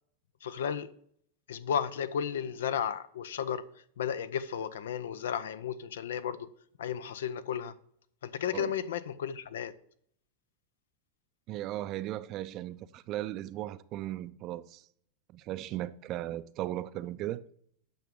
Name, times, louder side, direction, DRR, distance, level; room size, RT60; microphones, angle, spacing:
voice 1, 0.4-0.9 1.5-3.6 4.0-6.5 6.8-7.7 8.2-9.7, left 8 dB, 75° left, 0.5 m, -33 dB
voice 2, 11.5-14.9 15.3-17.4, right 14 dB, 45° right, 0.5 m, -37 dB
8.8 x 5.7 x 3.7 m
hypercardioid pair, 95°, 0 cm